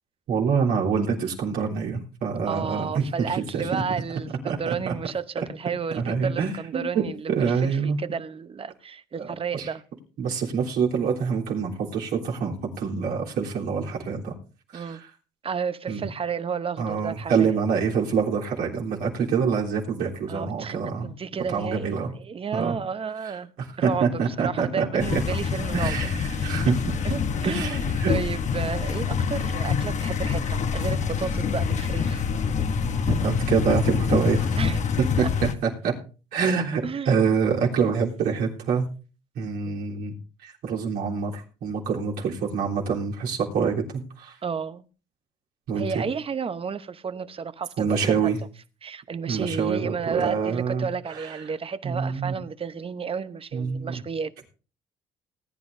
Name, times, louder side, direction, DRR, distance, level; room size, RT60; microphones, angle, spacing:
voice 1, 0.3-3.0 3.5-3.8 4.5-4.9 5.9-6.9 7.3-8.0 9.2-9.3 9.5-9.7 10.2-14.3 14.7-15.1 15.9-16.0 16.8-21.1 21.5-22.1 22.5-22.8 23.8-25.2 25.7-26.7 27.1-27.2 27.4-28.1 33.1-34.5 35.2-35.3 35.6-35.9 36.3-38.9 39.4-40.1 40.4-44.4 45.7-46.0 47.8-48.4 49.3-50.9 51.1-51.3 51.8-52.3 53.5-53.9, right 6 dB, 75° right, 3.4 m, -26 dB
voice 2, 2.4-9.8 14.7-15.0 15.4-17.6 20.3-20.8 21.0-23.5 23.8-26.0 26.3-26.8 27.0-27.1 27.4-32.2 34.6-34.8 36.8-37.1 39.6-39.8 44.4-44.9 45.7-48.3 48.8-54.3, right 6 dB, 35° right, 0.9 m, -32 dB
sound 1, 25.0-35.6, left 6 dB, 50° left, 1.0 m, -26 dB
19.5 x 9.7 x 2.7 m
supercardioid pair, 75°, 16 cm